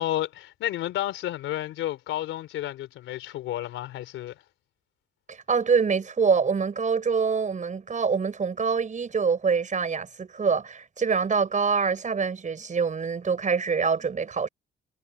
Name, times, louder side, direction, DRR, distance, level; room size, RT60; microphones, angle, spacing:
voice 1, 0.0-4.3, left 13 dB, 90° left, 3.9 m, -31 dB
voice 2, 5.3-14.5, right 5 dB, 40° right, 5.3 m, -25 dB
cardioid pair, 90°, 20 cm